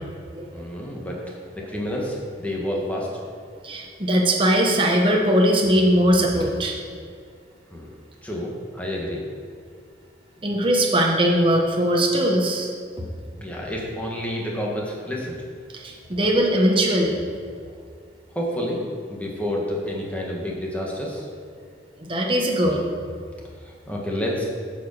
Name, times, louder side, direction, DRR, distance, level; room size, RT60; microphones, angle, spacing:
voice 1, 0.5-3.3 7.7-7.9 8.2-9.2 13.4-15.4 18.3-18.8 19.1-21.3 23.6-24.5, equal, 10° left, -3 dB, 1.5 m, -29 dB
voice 2, 3.6-6.8 10.4-12.7 13.0-13.1 15.7-17.2 22.0-22.8, equal, 30° right, 0 dB, 1.1 m, -20 dB
9.1 x 5.0 x 6.5 m, 2.2 s
head